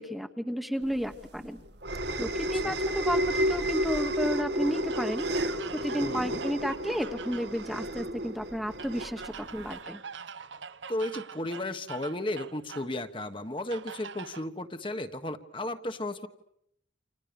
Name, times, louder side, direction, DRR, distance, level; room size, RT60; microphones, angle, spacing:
voice 1, 0.0-1.6 2.2-5.3 5.7-10.0, equal, ahead, 6 dB, 1.2 m, -32 dB
sound 1, 1.0-9.8, equal, 65° right, 1.7 m, -31 dB
sound 2, 4.7-7.7 8.8-12.9 13.7-14.5, right 6 dB, 85° right, 1.0 m, -44 dB
voice 2, 6.0-6.4 10.9-16.3, left 1 dB, 30° left, 8 dB, 1.4 m, -34 dB
29.5 x 27.5 x 7.0 m, 0.75 s
head